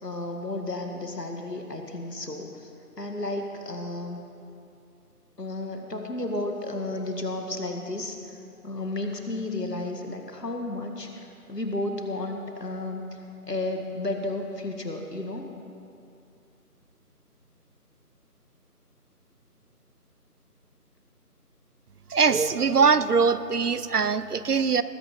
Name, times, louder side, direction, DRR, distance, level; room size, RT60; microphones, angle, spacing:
voice 1, 0.0-2.7 3.0-4.2 5.4-13.2 13.5-15.4, left 2 dB, 85° left, 3 dB, 2.1 m, -33 dB
voice 2, 22.1-24.8, right 5 dB, 70° right, 14 dB, 0.7 m, -22 dB
19.5 x 8.8 x 5.3 m, 2.6 s
figure-of-eight pair, 165°, 47 cm